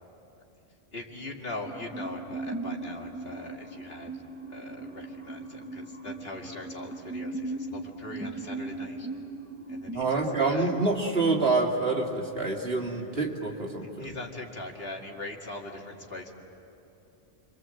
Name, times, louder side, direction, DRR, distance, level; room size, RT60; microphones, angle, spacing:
voice 1, 0.9-4.1 4.5-9.1 9.7-10.7 13.2-13.3 14.0-16.3, left 2 dB, 70° left, 1 dB, 2.5 m, -41 dB
sound 1, 1.6-10.0, right 2 dB, 10° right, 1.4 m, -38 dB
voice 2, 9.9-14.1, right 3 dB, 70° right, 0 dB, 2.7 m, -27 dB
30.0 x 23.5 x 7.8 m, 2.8 s
omnidirectional pair, 1.1 m